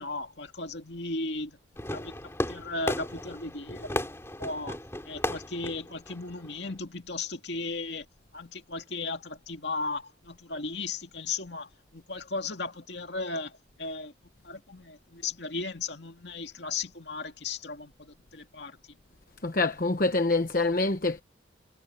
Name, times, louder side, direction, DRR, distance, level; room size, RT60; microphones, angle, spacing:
voice 1, 0.0-1.6 1.9-2.1 2.5-4.0 4.4-4.8 5.1-8.0 8.3-14.1 14.4-18.8, left 3 dB, 60° left, 2.3 m, -36 dB
Fireworks, 1.8-6.8, left 1 dB, 15° left, 3.7 m, -35 dB
voice 2, 19.4-21.2, left 3 dB, 45° left, 1.0 m, -25 dB
head